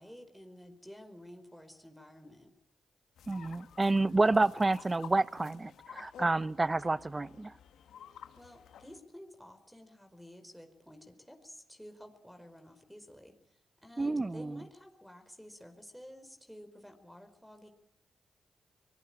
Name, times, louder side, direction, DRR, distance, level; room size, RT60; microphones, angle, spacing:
voice 1, 0.0-2.5 8.4-17.7, equal, ahead, 5.0 m, -52 dB
sound 1, 3.2-9.0, left 9 dB, 80° left, 1.7 m, -52 dB
voice 2, 3.3-7.5 14.0-14.6, right 2 dB, 30° right, 0.9 m, -29 dB
25.0 x 20.0 x 9.1 m
supercardioid pair, 45°, 0 cm